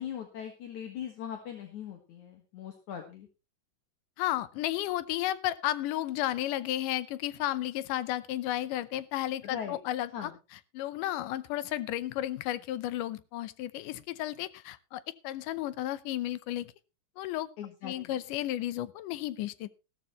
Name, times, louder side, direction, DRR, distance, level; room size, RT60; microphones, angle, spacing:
voice 1, 0.0-3.3 9.4-9.8 10.1-10.3 17.6-18.1, left 9 dB, 65° left, 4 dB, 2.9 m, -40 dB
voice 2, 4.2-10.3 10.7-16.7 17.2-17.5 17.8-19.7, left 14 dB, 85° left, 16 dB, 2.3 m, -33 dB
15.0 x 13.5 x 3.0 m, 0.29 s
omnidirectional pair, 3.7 m